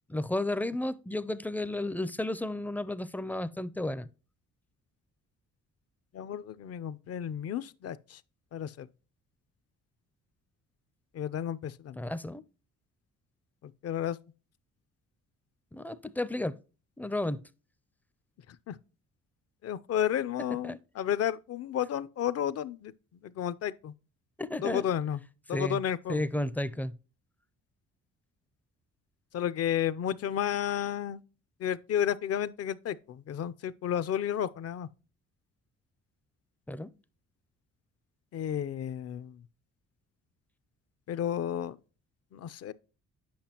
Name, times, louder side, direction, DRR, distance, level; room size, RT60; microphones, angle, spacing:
voice 1, 0.1-4.1 12.0-12.4 15.7-16.6 17.0-17.4 20.6-20.8 24.4-24.8 25.5-25.8 26.1-26.9 36.7-36.9, left 1 dB, 5° left, 0.4 m, -32 dB
voice 2, 6.1-8.2 8.5-8.9 11.1-12.0 13.6-14.2 18.5-18.8 19.6-22.9 23.2-23.9 24.6-25.2 25.5-26.2 29.3-31.2 31.6-34.9 38.3-39.4 41.1-41.8 42.3-42.7, left 10 dB, 55° left, 0.5 m, -32 dB
8.7 x 5.6 x 2.9 m
cardioid pair, 90°, 30 cm